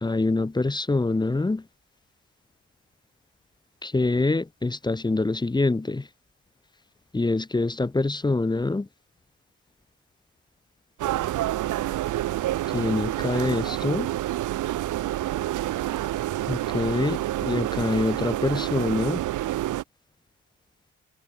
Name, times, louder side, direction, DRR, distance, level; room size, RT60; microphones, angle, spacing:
voice 1, 0.0-1.6 3.8-6.1 7.1-8.9 12.7-14.1 16.5-19.2, left 2 dB, 10° left, 0.8 m, -25 dB
sound 1, 11.0-19.8, right 14 dB, 50° right, 0.7 m, -28 dB
hypercardioid pair, 55°, 39 cm